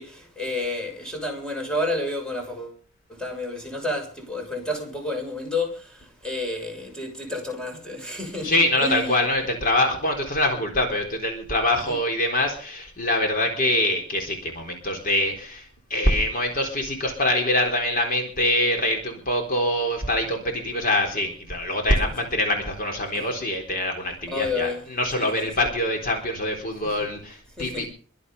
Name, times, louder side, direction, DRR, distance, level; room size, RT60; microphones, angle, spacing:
voice 1, 0.0-2.8 3.1-9.2 11.9-12.0 22.0-22.1 23.1-23.3 24.3-24.8 25.2-25.5 27.6-27.9, left 2 dB, 5° left, 6.3 m, -30 dB
voice 2, 8.4-15.6 15.9-27.9, left 1 dB, 40° left, 3.9 m, -24 dB
23.5 x 8.6 x 5.5 m
head